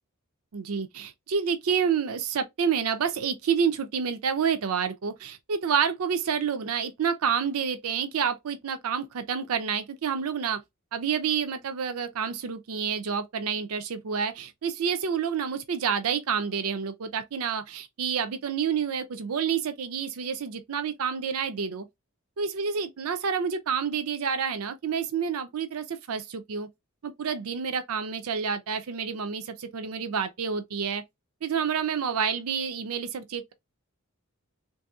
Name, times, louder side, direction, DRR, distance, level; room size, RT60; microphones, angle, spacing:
voice 1, 0.5-10.6 10.9-21.9 22.4-26.7 27.0-31.0 31.4-33.5, right 7 dB, 80° right, 0.5 m, -29 dB
3.4 x 2.7 x 2.3 m
head